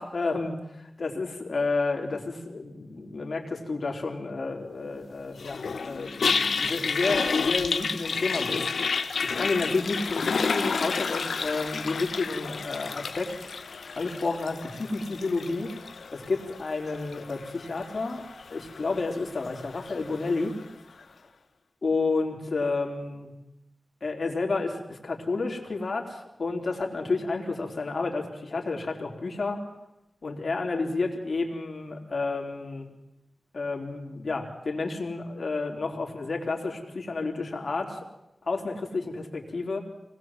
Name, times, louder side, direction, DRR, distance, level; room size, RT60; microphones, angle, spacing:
voice 1, 0.0-8.7 9.0-15.7 16.1-18.2 18.5-20.5 21.0-21.2 21.8-23.3 24.0-29.6 30.2-32.9 33.5-38.0 38.4-39.8, left 3 dB, 60° left, 2 dB, 3.9 m, -31 dB
Toilet flush, 5.4-20.6, left 5 dB, 90° left, 1.1 m, -31 dB
25.0 x 19.5 x 7.6 m, 0.90 s
wide cardioid pair, 85°, 0 cm